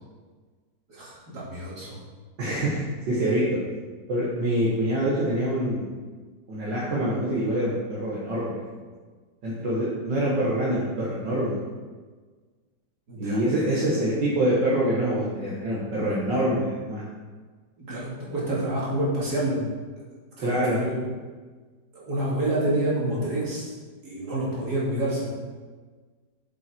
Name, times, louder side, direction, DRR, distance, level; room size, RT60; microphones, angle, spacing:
voice 1, 0.9-2.0 13.1-13.8 17.8-19.6 20.4-21.1 21.9-23.7 24.0-25.3, right 1 dB, 60° right, -7 dB, 3.2 m, -28 dB
voice 2, 2.4-3.4 4.1-5.9 6.5-8.6 9.4-11.6 13.2-17.0 20.4-20.8, right 1 dB, 75° right, -7 dB, 2.2 m, -25 dB
7.9 x 7.3 x 4.6 m, 1.4 s
omnidirectional pair, 2.0 m